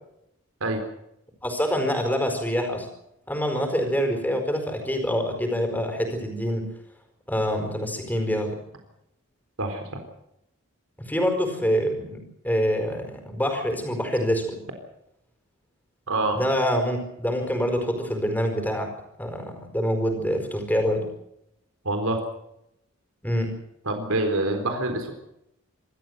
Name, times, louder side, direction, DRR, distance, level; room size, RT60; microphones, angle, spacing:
voice 1, 1.4-2.9 3.3-6.7 7.3-8.6 11.0-14.6 16.3-18.9 19.2-21.1 23.2-23.6, equal, 10° left, 5 dB, 4.6 m, -26 dB
voice 2, 9.6-10.0 16.1-16.4 21.8-22.2 23.9-25.1, right 2 dB, 85° right, 5 dB, 4.0 m, -26 dB
26.5 x 13.5 x 8.0 m, 0.80 s
head